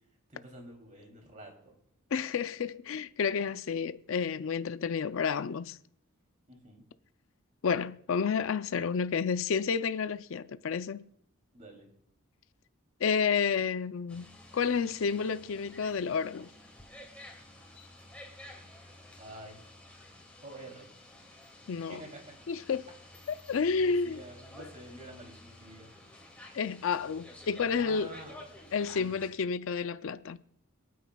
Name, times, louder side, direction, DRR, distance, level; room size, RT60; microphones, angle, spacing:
voice 1, 0.3-1.7 6.5-6.8 11.5-11.9 19.2-19.6 20.4-20.9 21.7-22.2 23.7-25.9 27.8-28.4 29.0-29.2, right 1 dB, 35° right, 2.8 m, -48 dB
voice 2, 2.1-5.8 7.6-11.1 13.0-16.5 21.7-22.0 22.5-22.9 23.5-24.2 24.6-24.7 26.5-28.1 28.7-30.4, left 6 dB, 65° left, 0.4 m, -30 dB
sound 1, 14.1-29.3, left 1 dB, 5° left, 2.2 m, -52 dB
27.0 x 9.4 x 2.3 m
head